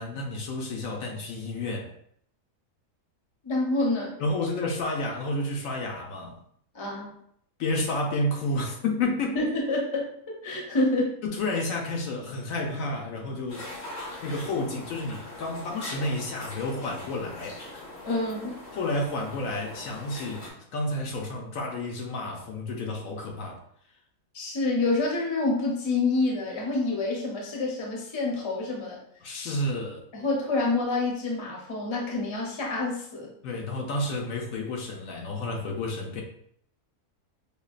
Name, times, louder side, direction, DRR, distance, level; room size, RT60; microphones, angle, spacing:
voice 1, 0.0-1.9 4.2-6.4 7.6-9.4 11.2-13.7 14.2-17.6 18.7-23.6 29.2-30.0 33.4-36.2, left 2 dB, 70° left, 0 dB, 1.0 m, -30 dB
voice 2, 3.4-4.2 6.7-7.2 9.4-10.1 10.4-11.2 18.0-18.5 24.3-29.0 30.1-33.3, left 2 dB, 25° left, -2 dB, 0.6 m, -27 dB
sound 1, 13.5-20.5, left 2 dB, 90° left, 1.7 m, -41 dB
5.3 x 2.2 x 2.4 m, 0.66 s
omnidirectional pair, 1.5 m